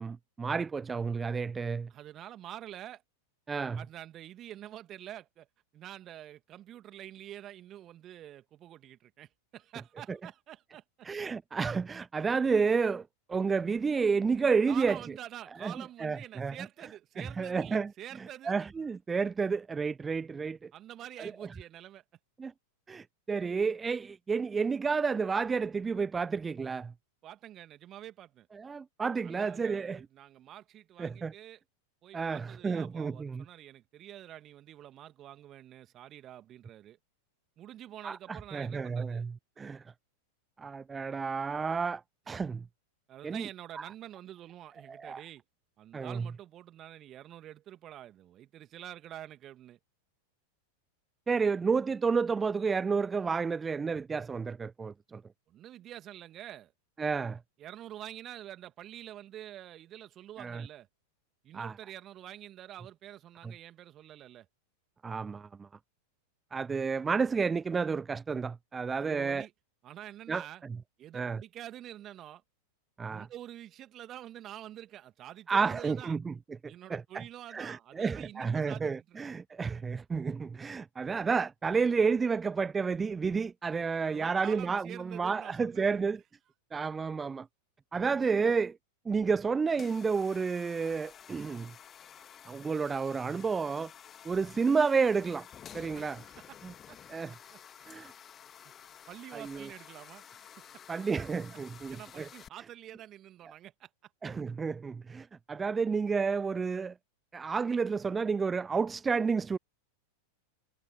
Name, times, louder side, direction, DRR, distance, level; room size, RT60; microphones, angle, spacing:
voice 1, 0.0-1.9 3.5-3.8 10.1-10.2 11.0-15.0 15.6-15.7 16.0-16.6 17.2-20.7 21.2-21.5 22.4-22.5 22.9-26.9 28.5-30.0 31.0-31.3 32.1-33.5 38.0-39.8 40.6-42.0 42.3-42.6 43.2-43.5 43.8-43.9 44.9-45.2 45.9-46.3 51.3-55.2 57.0-57.4 60.4-60.7 61.5-61.7 63.4-63.5 65.0-65.7 66.5-69.5 70.3-70.8 71.1-71.4 73.0-73.3 75.5-77.2 77.5-86.2 86.7-87.5 87.9-88.8 89.1-91.7 92.5-93.9 94.2-95.5 95.7-96.2 96.6-96.7 97.1-97.3 97.9-98.1 99.3-99.7 100.9-102.3 104.2-106.9 107.3-109.6, right 5 dB, 15° right, 0.3 m, -31 dB
voice 2, 1.9-3.0 3.8-5.5 5.7-11.1 14.7-18.5 20.7-22.0 27.2-28.5 29.2-31.6 32.0-37.0 37.6-39.3 43.1-45.4 45.8-49.8 55.5-56.7 57.6-60.9 61.4-64.5 69.0-69.5 69.8-70.6 71.0-72.4 73.0-76.2 76.7-79.2 84.0-86.0 95.7-96.5 96.9-97.0 97.5-97.9 99.1-101.1 101.9-103.9, right 12 dB, 30° right, 2.6 m, -47 dB
sound 1, 89.7-102.5, left 9 dB, 25° left, 2.3 m, -52 dB
figure-of-eight pair, 90°, 0 cm